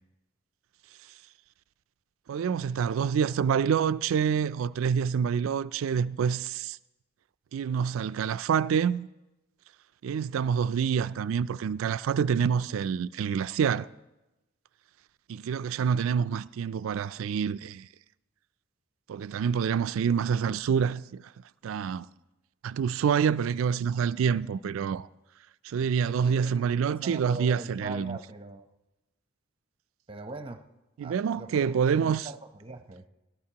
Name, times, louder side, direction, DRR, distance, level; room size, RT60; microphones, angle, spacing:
voice 1, 2.3-6.8 7.5-9.1 10.0-13.9 15.3-17.9 19.1-21.3 21.6-22.1 22.6-25.1 25.6-28.2 31.0-32.3, right 7 dB, 90° right, 0.3 m, -27 dB
voice 2, 25.8-28.7 30.1-30.6 31.0-33.1, right 2 dB, 25° right, 0.8 m, -42 dB
18.5 x 13.0 x 2.9 m
head